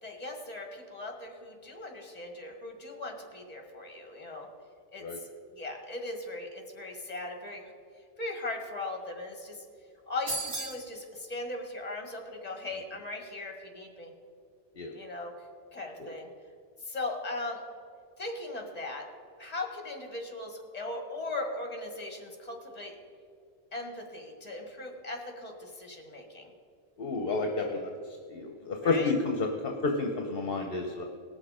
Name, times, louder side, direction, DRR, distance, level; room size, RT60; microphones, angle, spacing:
voice 1, 0.0-4.5 4.9-5.3 5.6-7.7 8.2-9.7 10.1-14.1 14.9-15.3 15.7-16.3 16.8-17.6 18.2-19.0 19.4-23.0 23.7-26.5 28.8-29.1, left 2 dB, 35° left, 2 dB, 1.8 m, -38 dB
sound 1, 10.3-10.9, right 2 dB, 75° right, 2.0 m, -34 dB
voice 2, 27.0-28.0 28.3-31.0, left 3 dB, 65° left, 2 dB, 1.0 m, -30 dB
19.0 x 6.6 x 4.9 m, 2.3 s
omnidirectional pair, 1.1 m